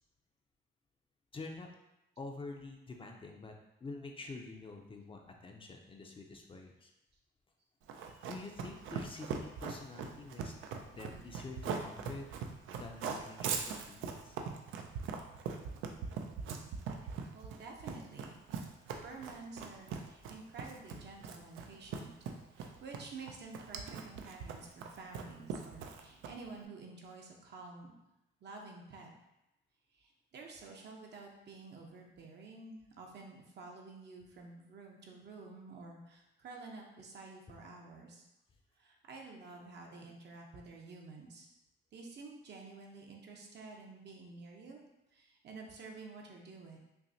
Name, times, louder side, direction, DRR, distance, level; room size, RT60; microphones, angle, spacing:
voice 1, 1.3-1.7 2.2-3.5 3.8-6.9 8.0-10.5 10.9-12.3 12.7-14.3 17.0-17.1 20.9-21.0, left 3 dB, 25° left, 2 dB, 0.5 m, -47 dB
Run, 7.9-26.6, right 6 dB, 80° right, 0.5 m, -41 dB
voice 2, 17.3-18.4 19.0-22.1 22.5-27.9 28.4-29.1 29.9-38.3 38.8-41.5 41.9-44.8 45.1-46.8, right 3 dB, 60° right, 0 dB, 0.8 m, -50 dB
5.7 x 2.1 x 2.7 m, 0.91 s
cardioid pair, 90°, 20 cm